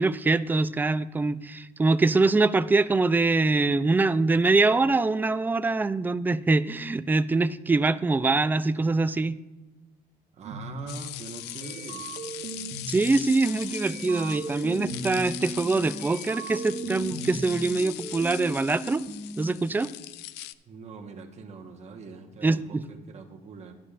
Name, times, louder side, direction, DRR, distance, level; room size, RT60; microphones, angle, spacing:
voice 1, 0.0-9.4 12.9-19.0 19.4-19.9 22.4-22.8, right 3 dB, 10° right, 14 dB, 0.3 m, -24 dB
voice 2, 10.3-12.1 20.7-23.7, right 4 dB, 40° right, 2 dB, 1.2 m, -43 dB
sound 1, 10.4-10.8 11.3-13.0 13.5-15.2 15.7-17.4, right 5 dB, 55° right, 1.0 m, -39 dB
sound 2, 10.9-20.5, left 15 dB, 85° left, 0.4 m, -40 dB
sound 3, 13.1-16.1 16.5-19.5, equal, 5° left, 0.9 m, -38 dB
12.0 x 9.9 x 2.5 m, 1.1 s
cardioid pair, 110°, 17 cm